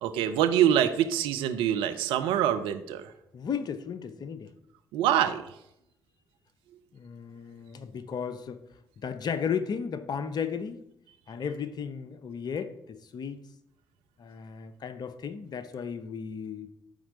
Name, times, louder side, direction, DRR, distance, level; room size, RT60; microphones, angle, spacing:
voice 1, 0.0-3.1 4.9-5.5, right 10 dB, 70° right, 0.6 m, -25 dB
voice 2, 3.3-4.5 6.9-8.6 9.0-10.8 11.3-13.4 14.2-16.7, left 7 dB, 50° left, 0.8 m, -34 dB
12.0 x 4.5 x 3.9 m
hypercardioid pair, 45°, 9 cm